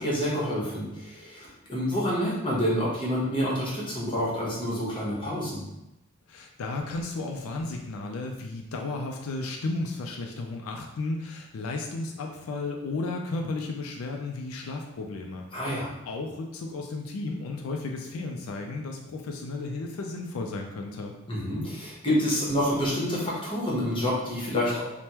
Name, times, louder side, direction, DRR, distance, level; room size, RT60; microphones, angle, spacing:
voice 1, 0.0-5.6 15.5-15.9 21.3-24.8, equal, 25° left, -6 dB, 0.9 m, -28 dB
voice 2, 6.3-21.2, left 3 dB, 85° left, 2 dB, 0.4 m, -34 dB
3.4 x 2.1 x 2.8 m, 0.91 s
head